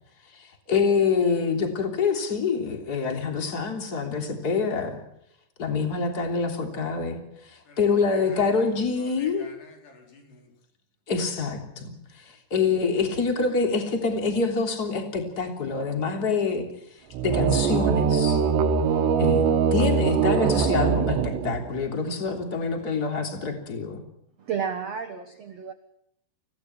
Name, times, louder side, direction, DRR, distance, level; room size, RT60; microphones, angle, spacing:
voice 1, 0.7-5.0 5.6-7.2 7.8-9.5 11.1-12.0 12.5-16.6 17.2-18.4 19.2-19.4 19.7-24.0, left 5 dB, 25° left, 3.2 m, -26 dB
voice 2, 8.1-8.7 9.0-10.5, left 3 dB, 70° left, 6.5 m, -48 dB
sound 1, 17.1-21.9, right 6 dB, 85° right, 3.6 m, -22 dB
voice 3, 24.4-25.7, right 7 dB, 65° right, 1.7 m, -31 dB
29.0 x 17.0 x 6.1 m
omnidirectional pair, 4.8 m